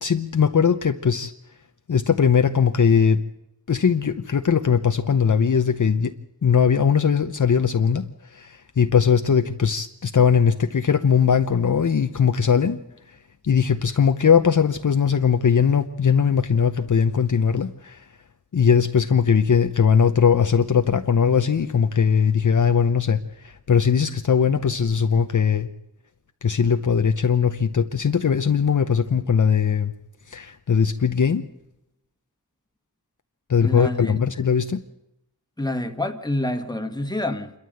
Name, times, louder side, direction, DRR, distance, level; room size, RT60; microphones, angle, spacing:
voice 1, 0.0-1.3 1.9-3.2 3.7-6.1 6.4-12.8 13.1-13.2 13.4-18.1 18.5-25.7 26.4-29.9 30.3-31.4 33.5-34.8, left 6 dB, 50° left, 8 dB, 0.8 m, -20 dB
voice 2, 33.6-34.2 35.6-37.5, left 1 dB, 10° left, 6 dB, 1.6 m, -27 dB
27.0 x 13.0 x 7.8 m, 0.87 s
wide cardioid pair, 75°, 38 cm